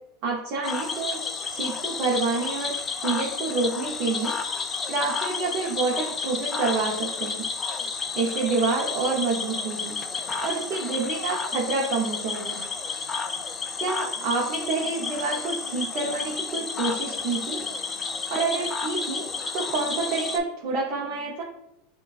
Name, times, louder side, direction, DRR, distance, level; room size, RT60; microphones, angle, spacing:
voice 1, 0.2-1.2 1.5-2.7 3.0-4.3 4.9-7.4 8.1-10.0 10.4-12.6 13.8-17.6 18.3-19.3 19.5-21.4, right 4 dB, 45° right, -2 dB, 0.7 m, -28 dB
Cricket / Frog, 0.6-20.4, left 5 dB, 20° left, 0.3 m, -31 dB
6.4 x 2.2 x 2.4 m, 0.86 s
supercardioid pair, 150°, 0 cm